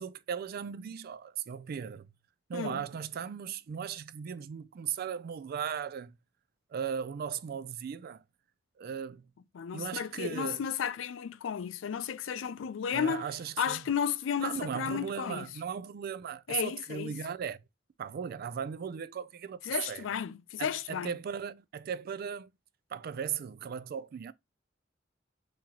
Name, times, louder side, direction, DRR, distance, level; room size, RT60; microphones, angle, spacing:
voice 1, 0.0-2.1 2.5-6.1 6.7-8.2 8.8-9.3 9.7-10.6 12.9-13.8 14.4-17.6 18.0-19.6 19.9-20.1 20.6-22.5 22.9-24.3, right 7 dB, 50° right, 0.3 m, -37 dB
voice 2, 2.5-2.8 9.5-13.3 13.6-15.5 16.5-17.1 19.6-21.1, left 7 dB, 85° left, 0.4 m, -33 dB
3.7 x 2.9 x 2.9 m
head